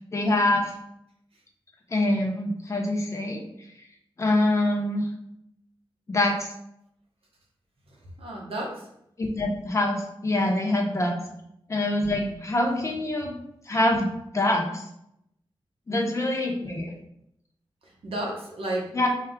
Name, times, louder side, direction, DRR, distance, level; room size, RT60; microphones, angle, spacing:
voice 1, 0.1-0.7 1.9-3.4 4.2-5.0 6.1-6.5 9.2-11.2 11.7-13.4 13.7-14.8 15.9-16.9 18.9-19.1, left 1 dB, 30° left, 0 dB, 0.8 m, -25 dB
voice 2, 7.8-8.9 11.2-11.3 12.1-12.4 13.2-13.3 15.9-16.1 17.8-19.1, right 1 dB, 75° right, -2 dB, 1.1 m, -34 dB
4.5 x 2.3 x 3.6 m, 0.76 s
wide cardioid pair, 125°, 10 cm